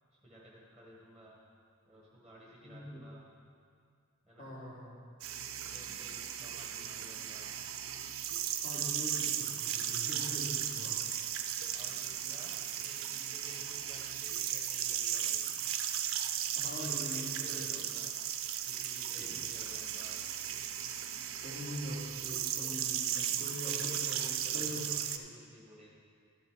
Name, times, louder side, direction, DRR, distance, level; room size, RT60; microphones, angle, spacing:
voice 1, 0.1-1.4 1.9-3.3 4.2-4.5 5.6-7.5 10.8-11.2 11.7-15.5 16.6-18.1 18.6-20.2 23.1-25.9, equal, ahead, -4 dB, 1.2 m, -54 dB
voice 2, 2.6-3.0 4.4-5.0 8.5-11.0 11.7-11.8 16.6-17.9 19.2-19.4 21.4-24.2 24.5-24.8, equal, 35° left, -5 dB, 2.3 m, -43 dB
sound 1, 5.2-25.2, right 10 dB, 65° right, 0.5 m, -36 dB
12.5 x 7.0 x 4.7 m, 2.2 s
head